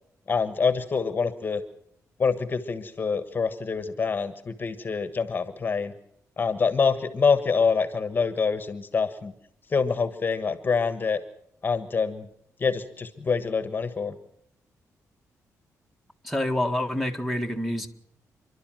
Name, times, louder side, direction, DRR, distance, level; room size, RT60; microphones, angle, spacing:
voice 1, 0.3-1.6 2.2-5.9 6.4-9.3 9.7-11.2 11.6-12.3 12.6-14.2, left 5 dB, 35° left, 11 dB, 1.3 m, -26 dB
voice 2, 16.2-17.9, left 1 dB, ahead, 5 dB, 1.7 m, -27 dB
29.5 x 11.5 x 7.6 m, 0.73 s
cardioid pair, 120°, 6 cm